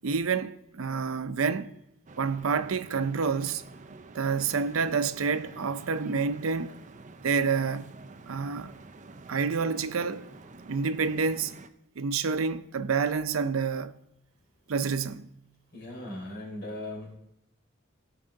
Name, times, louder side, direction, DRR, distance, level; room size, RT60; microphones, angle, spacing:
voice 1, 0.0-1.7 2.2-3.6 4.1-6.8 7.2-7.9 8.3-8.7 9.3-10.3 10.7-11.5 12.0-13.9 14.7-15.3, right 5 dB, 90° right, 0.6 m, -28 dB
sound 1, 2.1-11.7, right 3 dB, 35° right, 0.5 m, -49 dB
voice 2, 15.7-17.2, left 1 dB, 55° left, 3.8 m, -38 dB
16.0 x 5.5 x 3.9 m
head